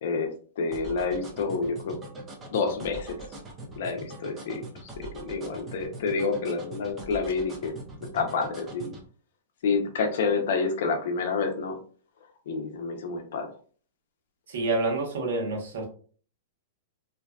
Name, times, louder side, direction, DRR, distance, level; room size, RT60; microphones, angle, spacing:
voice 1, 0.0-2.0 2.5-3.2 3.7-7.7 8.1-9.0 9.6-11.8 12.5-13.5, left 4 dB, 65° left, 5 dB, 0.6 m, -29 dB
sound 1, 0.7-9.0, right 2 dB, 20° right, 0.6 m, -42 dB
voice 2, 14.5-15.8, right 3 dB, 70° right, 1 dB, 1.0 m, -28 dB
2.6 x 2.2 x 2.3 m, 0.43 s
hypercardioid pair, 130°, 0 cm